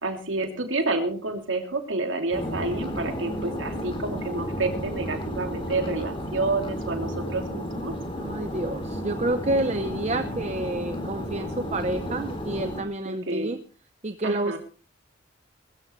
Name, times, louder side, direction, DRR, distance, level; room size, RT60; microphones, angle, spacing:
voice 1, 0.0-7.9 13.0-13.6 14.2-14.6, right 3 dB, 80° right, 4 dB, 3.0 m, -29 dB
sound 1, 2.3-12.8, equal, 25° left, 3.4 m, -32 dB
voice 2, 8.2-13.6 14.0-14.6, right 1 dB, 35° right, 9 dB, 0.8 m, -29 dB
21.5 x 14.0 x 3.2 m, 0.38 s
head